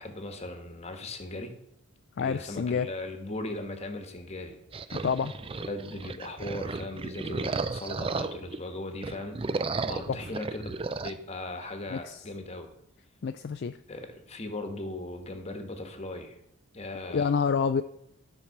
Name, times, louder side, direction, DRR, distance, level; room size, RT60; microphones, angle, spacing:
voice 1, 0.0-1.5 2.2-4.6 4.9-5.0 5.6-9.4 9.8-10.7 11.0-12.7 13.9-16.4 16.7-17.3, left 2 dB, 30° left, 1.3 m, -38 dB
voice 2, 2.2-2.9 5.0-5.4 10.1-10.2 11.9-12.2 13.2-13.8 17.1-17.8, left 6 dB, 50° left, 0.4 m, -28 dB
sound 1, 4.7-8.6 8.9-11.1, right 4 dB, 25° right, 0.4 m, -34 dB
13.0 x 4.6 x 6.5 m
head